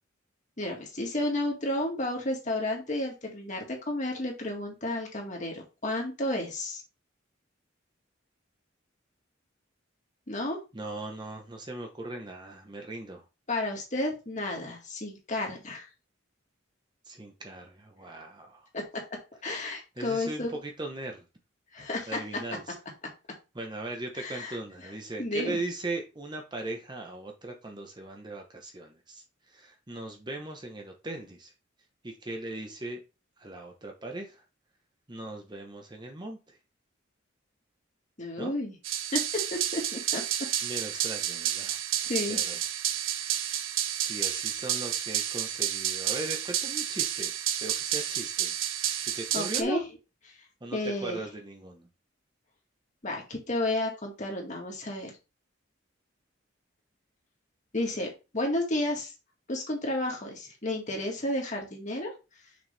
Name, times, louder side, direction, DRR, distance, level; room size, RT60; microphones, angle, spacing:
voice 1, 0.6-6.8 10.3-10.6 13.5-15.9 18.7-18.8 19.4-20.5 21.7-22.2 24.2-24.6 25.2-25.6 38.2-38.8 39.1-39.2 39.7-40.2 42.0-42.4 49.3-49.8 50.7-51.2 53.0-55.1 57.7-58.1 58.3-59.1 59.5-62.1, left 1 dB, 40° left, 1 dB, 1.9 m, -31 dB
voice 2, 10.7-13.2 17.1-18.7 20.0-21.2 22.1-22.8 23.5-31.5 32.0-33.0 33.4-34.4 35.1-36.5 38.4-38.5 40.6-41.8 42.3-42.6 44.0-48.5 49.0-49.8 50.6-51.9, right 2 dB, 25° right, 3 dB, 0.9 m, -39 dB
sound 1, 38.8-49.6, right 11 dB, 85° right, 0.7 m, -30 dB
6.2 x 4.7 x 3.4 m, 0.29 s
head